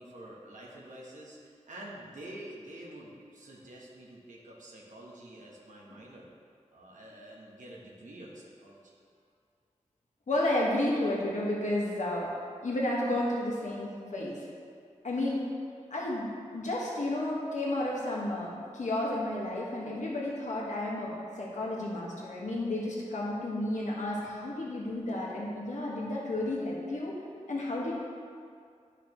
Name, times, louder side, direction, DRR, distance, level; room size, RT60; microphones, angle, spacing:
voice 1, 0.0-6.3 6.7-9.0, right 1 dB, 90° right, -3 dB, 1.3 m, -48 dB
voice 2, 10.3-12.3 12.6-14.4 15.0-15.4 15.9-16.3 16.5-27.2 27.5-27.9, left 1 dB, 75° left, -4 dB, 1.6 m, -32 dB
10.5 x 5.7 x 3.1 m, 2.3 s
wide cardioid pair, 105°, 12 cm